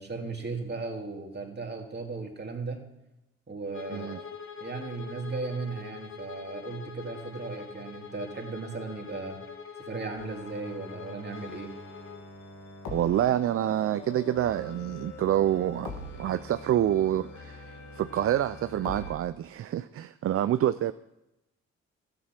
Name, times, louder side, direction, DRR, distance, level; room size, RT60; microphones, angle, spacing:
voice 1, 0.0-2.9 3.5-4.2 4.6-9.4 9.8-11.8, right 3 dB, 35° right, 2.8 m, -36 dB
Bowed string instrument, 3.7-12.3, left 6 dB, 45° left, 1.6 m, -44 dB
sound 1, 10.2-19.1, left 2 dB, 80° left, 2.1 m, -43 dB
voice 2, 12.9-20.9, right 11 dB, 50° right, 0.5 m, -27 dB
12.5 x 9.1 x 6.1 m
supercardioid pair, 55°, 29 cm